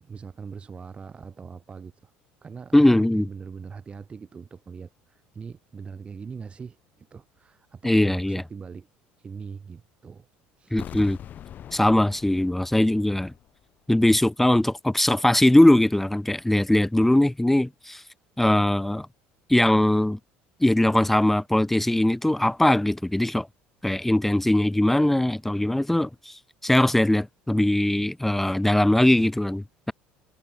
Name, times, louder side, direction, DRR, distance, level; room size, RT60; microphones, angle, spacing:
voice 1, 0.0-2.1 2.4-8.9 9.2-10.3 10.6-10.8, right 5 dB, 25° right, 1.5 m, -41 dB
voice 2, 2.7-3.3 7.8-8.4 10.7-11.2 11.7-13.3 13.9-18.0 18.4-19.1 19.5-20.2 20.6-23.5 23.8-26.3 26.6-29.9, left 1 dB, 5° left, 0.4 m, -21 dB
sound 1, 10.8-13.7 13.9-14.0, left 10 dB, 45° left, 1.2 m, -42 dB
supercardioid pair, 100°, 4 cm